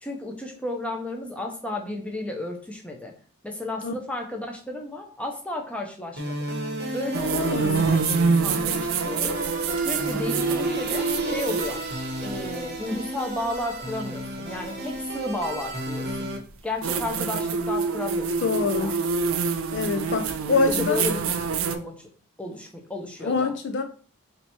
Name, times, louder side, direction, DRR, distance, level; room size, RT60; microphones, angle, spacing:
voice 1, 0.0-3.1 3.4-6.3 6.9-9.4 9.8-11.8 12.2-16.3 16.6-18.9 20.7-21.2 21.6-22.1 22.4-23.5, left 1 dB, 5° left, 0.6 m, -33 dB
sound 1, 6.2-16.4, equal, 45° right, 0.8 m, -33 dB
sound 2, 7.1-12.6 14.7-14.8 16.8-21.8, right 5 dB, 65° right, 0.5 m, -26 dB
voice 2, 7.3-7.9 18.4-19.0 19.7-21.1 23.2-23.8, left 4 dB, 55° left, 0.4 m, -25 dB
3.3 x 2.8 x 4.3 m
head